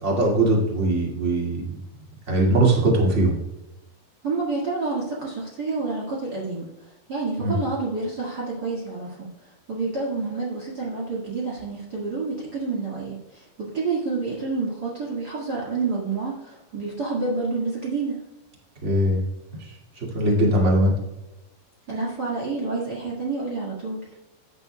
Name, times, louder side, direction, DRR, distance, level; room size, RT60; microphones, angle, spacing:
voice 1, 0.0-1.8 2.3-3.3 7.4-7.5 18.8-19.2 19.6-20.9, right 1 dB, 35° right, -2 dB, 1.0 m, -21 dB
voice 2, 4.2-9.3 9.7-18.2 21.9-24.0, right 3 dB, 75° right, -5 dB, 0.9 m, -29 dB
15.5 x 8.3 x 2.3 m, 0.95 s
omnidirectional pair, 5.2 m